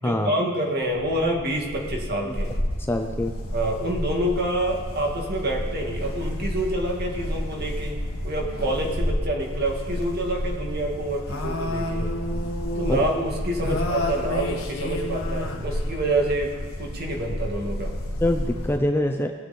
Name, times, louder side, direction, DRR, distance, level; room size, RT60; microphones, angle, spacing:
voice 1, 0.0-2.5 3.5-8.0 8.2-12.1 12.7-16.5 16.8-17.9, right 1 dB, 50° right, 0 dB, 2.2 m, -27 dB
sound 1, 0.8-18.8, left 1 dB, 75° left, 1.6 m, -30 dB
voice 2, 2.9-3.3 12.9-13.0 18.2-19.3, left 1 dB, 10° left, 4 dB, 0.6 m, -24 dB
20.0 x 8.1 x 4.3 m, 1.5 s
head